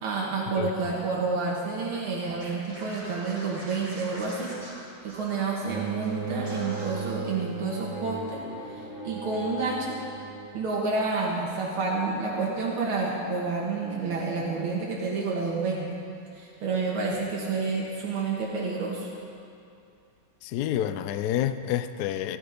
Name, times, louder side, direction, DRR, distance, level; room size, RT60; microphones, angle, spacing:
voice 1, 0.0-4.5 5.0-8.4 9.0-9.9 10.5-15.9 16.3-19.1, right 4 dB, 75° right, -3 dB, 2.4 m, -29 dB
voice 2, 0.6-0.9 20.4-22.4, left 11 dB, 85° left, 11 dB, 0.8 m, -29 dB
Scratching (performance technique), 2.4-5.7 6.0-6.2 6.4-7.0, equal, 15° right, 2.9 m, -44 dB
Bowed string instrument, 5.6-10.7, right 3 dB, 35° right, 1.8 m, -37 dB
15.0 x 12.5 x 5.1 m, 2.5 s
omnidirectional pair, 2.4 m